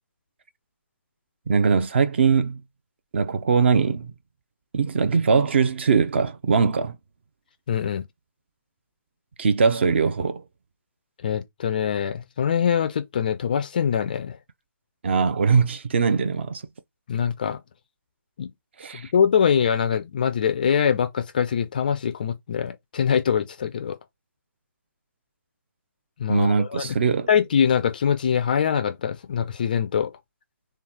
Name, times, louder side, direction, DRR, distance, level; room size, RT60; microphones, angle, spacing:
voice 1, 1.5-2.6 3.1-4.1 4.7-7.0 9.4-10.4 15.0-16.6 18.8-19.1 26.3-27.3, right 5 dB, 35° right, 0.5 m, -21 dB
voice 2, 7.7-8.0 11.2-14.4 17.1-17.6 18.4-18.5 18.9-24.0 26.2-27.0 27.3-30.1, left 7 dB, 25° left, 0.4 m, -23 dB
3.6 x 3.0 x 4.2 m
figure-of-eight pair, 145°, 11 cm